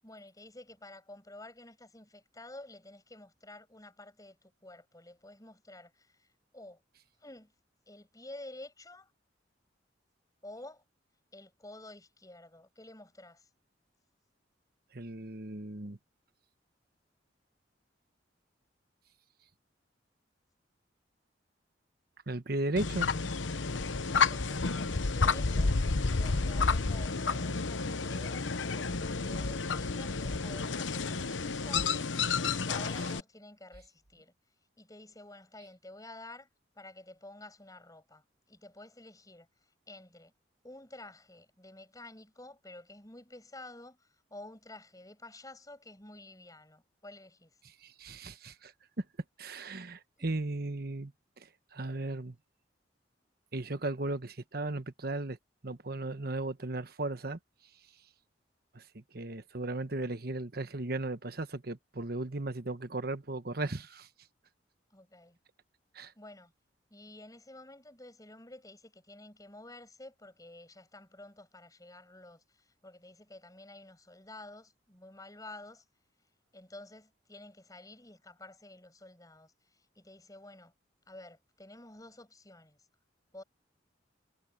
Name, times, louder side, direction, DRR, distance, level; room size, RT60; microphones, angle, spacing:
voice 1, 0.0-6.3 6.5-6.8 7.2-7.5 7.9-9.1 10.4-10.8 11.3-13.5 24.1-34.3 34.8-36.5 36.7-39.5 39.9-40.3 40.6-47.5 50.2-50.4 64.9-65.4 66.2-66.5 66.9-75.8 76.5-80.7 81.1-82.8 83.3-83.4, left 2 dB, 20° left, 7.9 m, -51 dB
voice 2, 14.9-16.0 22.3-23.1 47.8-48.7 49.0-49.1 49.4-51.1 51.4-52.4 53.5-55.4 55.6-57.4 58.7-64.1 65.9-66.1, right 2 dB, 55° right, 1.2 m, -36 dB
sound 1, 22.8-33.2, left 4 dB, 85° left, 0.9 m, -30 dB
head